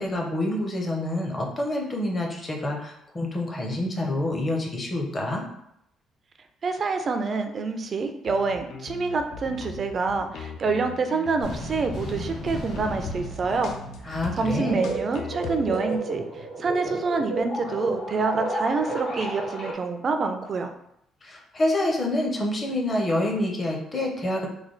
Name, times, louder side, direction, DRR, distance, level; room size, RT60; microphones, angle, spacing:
voice 1, 0.0-5.4 14.0-14.8 21.2-24.5, left 1 dB, 20° left, 0 dB, 0.6 m, -27 dB
voice 2, 6.6-13.7 14.1-16.3 16.6-20.7, right 4 dB, 30° right, 6 dB, 0.3 m, -27 dB
sound 1, 8.2-16.0, left 4 dB, 65° left, 0.4 m, -39 dB
sound 2, 11.4-14.9, equal, 85° left, 1.5 m, -37 dB
sound 3, 14.6-19.7, right 2 dB, 45° left, 1.0 m, -32 dB
3.2 x 2.2 x 3.7 m, 0.76 s
cardioid pair, 170°, 0 cm